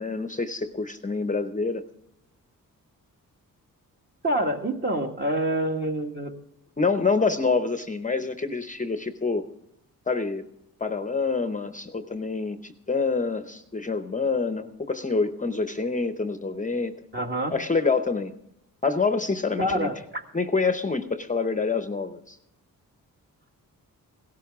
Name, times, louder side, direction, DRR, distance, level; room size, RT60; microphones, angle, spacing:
voice 1, 0.0-1.9 6.8-9.4 10.1-10.4 10.8-17.0 17.5-18.3 18.8-19.9 20.3-22.4, left 4 dB, 20° left, 9 dB, 0.8 m, -26 dB
voice 2, 4.2-6.3 17.1-17.5 19.6-20.2, right 1 dB, 30° right, 3 dB, 1.8 m, -27 dB
17.0 x 13.0 x 3.6 m, 0.80 s
wide cardioid pair, 105°, 34 cm